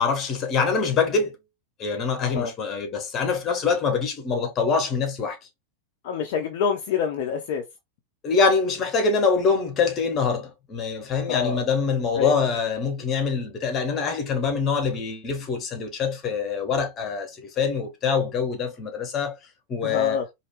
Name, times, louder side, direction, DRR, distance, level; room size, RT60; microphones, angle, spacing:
voice 1, 0.0-1.3 1.8-5.4 8.2-19.4 19.7-20.2, left 5 dB, 30° left, 1.2 m, -24 dB
voice 2, 6.0-7.6 11.3-11.6 12.2-12.3 19.8-20.2, left 7 dB, 50° left, 0.7 m, -26 dB
4.5 x 2.8 x 3.0 m
figure-of-eight pair, 90°, 0 cm